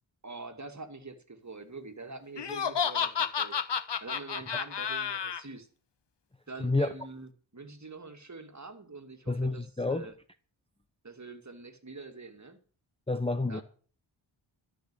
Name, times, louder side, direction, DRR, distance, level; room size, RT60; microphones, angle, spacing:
voice 1, 0.2-3.6 4.0-5.7 6.5-10.1 11.0-12.6 13.5-13.6, right 3 dB, 35° right, 2.2 m, -45 dB
Laughter, 2.4-5.4, left 7 dB, 55° left, 1.0 m, -31 dB
voice 2, 9.3-10.1 13.1-13.6, left 2 dB, 10° left, 0.8 m, -29 dB
13.5 x 6.3 x 9.7 m
wide cardioid pair, 75°, 49 cm